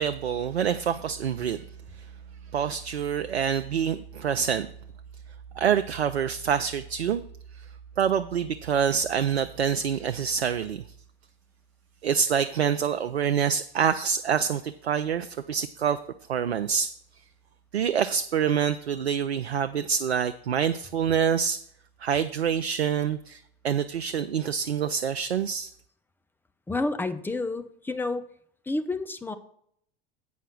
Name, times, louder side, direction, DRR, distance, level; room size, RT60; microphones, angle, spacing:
voice 1, 0.0-1.6 2.0-2.1 2.5-4.7 5.6-7.2 7.5-7.6 8.0-10.8 12.0-16.0 16.3-16.9 17.7-21.6 22.0-25.7, right 7 dB, 80° right, 10 dB, 0.5 m, -26 dB
voice 2, 26.7-28.3 28.7-29.4, left 2 dB, 5° left, 8 dB, 0.6 m, -29 dB
8.3 x 5.5 x 6.0 m, 0.67 s
figure-of-eight pair, 80°, 31 cm